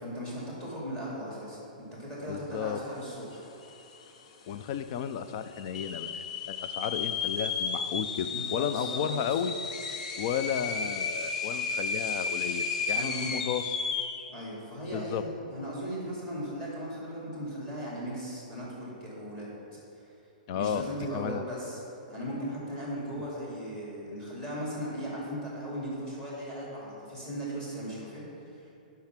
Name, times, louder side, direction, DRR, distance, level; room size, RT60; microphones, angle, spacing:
voice 1, 0.0-3.5 8.3-9.0 9.3-9.4 12.9-13.4 14.3-19.5 20.5-21.8 22.1-28.2 28.5-28.7, equal, 15° left, -6 dB, 2.4 m, -37 dB
voice 2, 2.3-2.8 4.5-9.5 10.2-13.8 14.9-15.2 20.5-20.9 21.1-21.4, left 8 dB, 30° left, 11 dB, 0.4 m, -33 dB
sound 1, 3.3-3.4 3.6-4.2 4.7-4.8 5.5-14.3, left 5 dB, 45° left, 0.8 m, -33 dB
10.5 x 5.7 x 6.0 m, 2.7 s
hypercardioid pair, 175°, 5 cm